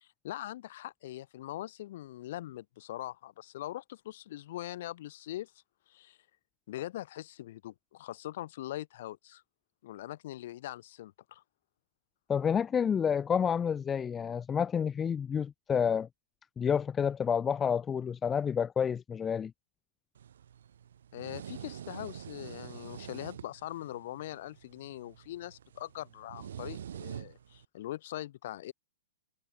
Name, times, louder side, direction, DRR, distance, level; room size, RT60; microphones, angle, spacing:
voice 1, 0.0-5.5 5.9-6.2 6.7-9.4 9.8-11.4 21.1-28.7, left 14 dB, 60° left, 1.0 m, -42 dB
voice 2, 12.3-16.1 16.6-19.5, left 7 dB, 20° left, 0.3 m, -29 dB
sound 1, 20.2-27.6, right 9 dB, 75° right, 3.3 m, -46 dB
hypercardioid pair, 125°, 0 cm